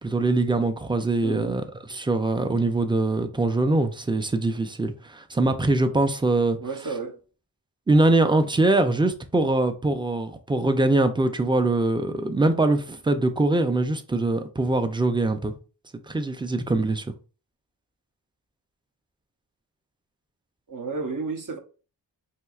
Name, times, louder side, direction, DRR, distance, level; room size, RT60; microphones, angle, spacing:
voice 1, 0.0-6.6 7.9-15.5 16.1-17.1, right 2 dB, 10° right, 0.4 m, -23 dB
voice 2, 1.2-1.6 6.6-7.2 20.7-21.6, right 4 dB, 45° right, 0.7 m, -32 dB
4.4 x 2.7 x 2.4 m
wide cardioid pair, 65°, 44 cm